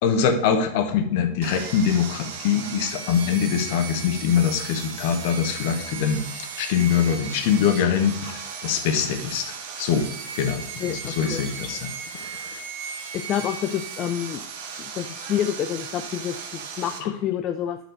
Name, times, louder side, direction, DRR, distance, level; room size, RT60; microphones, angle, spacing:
voice 1, 0.0-9.4 9.8-10.1 10.3-11.9 12.1-12.6 17.0-17.1, left 7 dB, 50° left, 6 dB, 1.1 m, -23 dB
Sawing, 1.4-17.0, right 6 dB, 50° right, 1.1 m, -36 dB
voice 2, 10.8-11.4 13.1-14.4 14.8-17.8, left 10 dB, 30° left, 7 dB, 0.4 m, -28 dB
5.8 x 5.6 x 6.5 m, 0.72 s
figure-of-eight pair, 90°, 0 cm